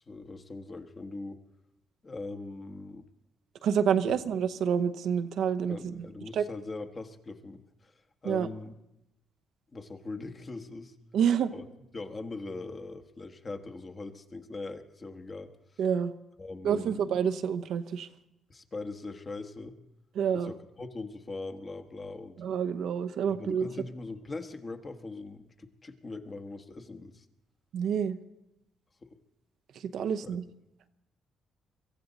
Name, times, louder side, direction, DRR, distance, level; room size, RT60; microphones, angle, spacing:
voice 1, 0.1-1.4 2.0-3.0 4.0-4.1 5.7-7.9 8.2-8.7 9.7-10.9 11.5-11.7 11.9-15.5 16.4-17.0 18.5-19.8 20.3-22.4 23.3-27.2 29.0-29.1 30.2-30.4, left 3 dB, 35° left, 6 dB, 1.3 m, -41 dB
voice 2, 3.6-6.1 6.3-6.4 8.2-8.5 11.1-11.5 15.8-16.1 16.6-18.1 20.1-20.5 22.4-23.7 27.7-28.2 29.7-30.4, right 7 dB, 75° right, 9 dB, 0.8 m, -28 dB
24.0 x 14.5 x 4.0 m, 0.87 s
cardioid pair, 90°, 0 cm